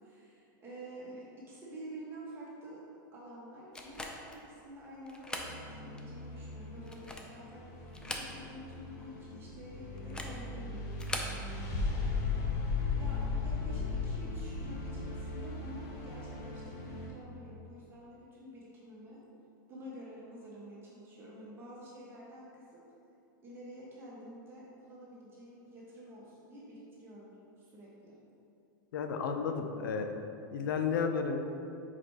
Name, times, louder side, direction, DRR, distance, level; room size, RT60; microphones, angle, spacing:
voice 1, 0.0-2.8 3.1-12.6 12.9-19.2 19.7-22.8 23.4-27.3 27.6-28.2, equal, 20° right, -6 dB, 1.2 m, -49 dB
sound 1, 3.7-4.4 5.1-5.6 6.0-6.1 6.8-7.4 7.9-8.7 9.0-9.1 10.0-10.4 10.9-11.4, left 2 dB, 10° left, 0.4 m, -41 dB
sound 2, 5.4-17.1, left 4 dB, 35° left, 0.9 m, -37 dB
voice 2, 28.9-30.1 30.5-31.4, left 6 dB, 80° left, 6 dB, 0.5 m, -32 dB
5.0 x 4.1 x 4.6 m, 2.7 s
supercardioid pair, 145°, 11 cm